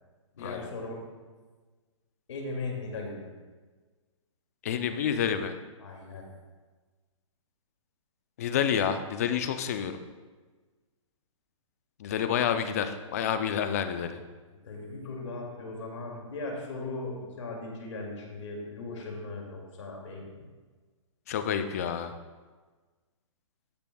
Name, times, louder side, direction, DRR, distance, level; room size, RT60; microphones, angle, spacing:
voice 1, 0.3-1.0 2.3-3.3 5.8-6.3 14.5-20.5, left 3 dB, 65° left, -1 dB, 2.4 m, -38 dB
voice 2, 4.6-5.6 8.4-10.0 12.0-14.2 21.3-22.1, left 8 dB, 30° left, 9 dB, 0.5 m, -29 dB
14.0 x 6.9 x 2.3 m, 1.3 s
hypercardioid pair, 160°, 17 cm